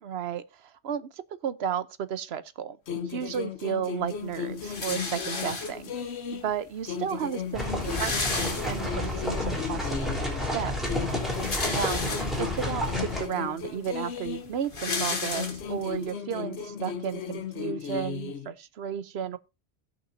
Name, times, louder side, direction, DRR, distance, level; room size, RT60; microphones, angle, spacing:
voice 1, 0.0-2.8 3.0-5.9 6.3-10.7 11.7-12.1 12.4-19.4, right 8 dB, 75° right, 1.0 m, -33 dB
sound 1, 2.9-6.6 6.9-10.5 10.9-14.6 14.9-18.5, left 7 dB, 80° left, 1.1 m, -36 dB
sound 2, 4.6-6.0 6.9-7.0 7.2-7.3 7.6-9.1 9.6-9.7 11.1-12.6 13.2-13.3 13.6-16.0, left 3 dB, 55° left, 1.7 m, -33 dB
sound 3, 7.5-13.2, left 1 dB, ahead, 3.5 m, -31 dB
17.5 x 5.9 x 2.6 m
omnidirectional pair, 1.1 m